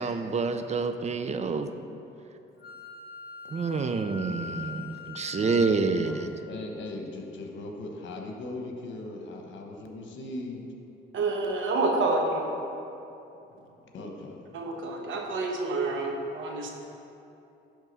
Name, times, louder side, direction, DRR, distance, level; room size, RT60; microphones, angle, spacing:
voice 1, 0.0-1.7 3.5-6.3, right 4 dB, 35° right, 8 dB, 0.5 m, -28 dB
Wind instrument woodwind instrument, 2.6-6.0, left 4 dB, 50° left, 0.9 m, -41 dB
voice 2, 3.4-3.9 5.3-5.7 6.0-6.1 6.5-10.6 13.9-14.4, left 2 dB, 70° left, 2 dB, 1.1 m, -39 dB
voice 3, 11.1-12.5 14.5-16.7, right 3 dB, 75° right, 1 dB, 1.1 m, -28 dB
10.5 x 3.7 x 5.4 m, 2.8 s
cardioid pair, 90°, 20 cm